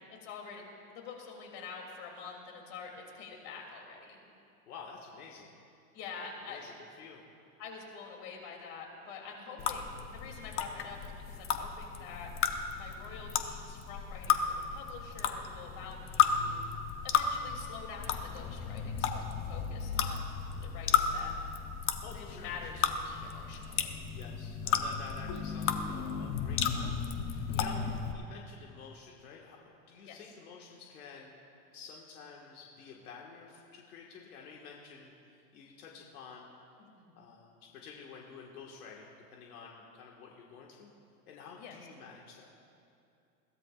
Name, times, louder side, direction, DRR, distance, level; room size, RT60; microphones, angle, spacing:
voice 1, 0.2-0.6 0.9-4.2 5.9-6.6 7.6-12.3 12.7-16.6 17.0-20.3 20.6-21.3 22.1-24.0 27.5-27.9 30.1-30.2 37.0-37.1 41.6-41.8, left 5 dB, 55° left, 1 dB, 3.1 m, -46 dB
voice 2, 4.7-5.5 6.1-7.2 9.6-9.8 11.6-11.7 22.0-22.8 24.1-27.0 27.3-27.9 28.1-29.6 29.9-31.3 31.7-36.5 37.2-40.9 41.3-42.5, left 5 dB, 85° left, -1 dB, 1.8 m, -50 dB
sound 1, 9.6-28.1, left 7 dB, 30° left, 0.8 m, -33 dB
21.5 x 16.0 x 2.5 m, 2.6 s
supercardioid pair, 145°, 43 cm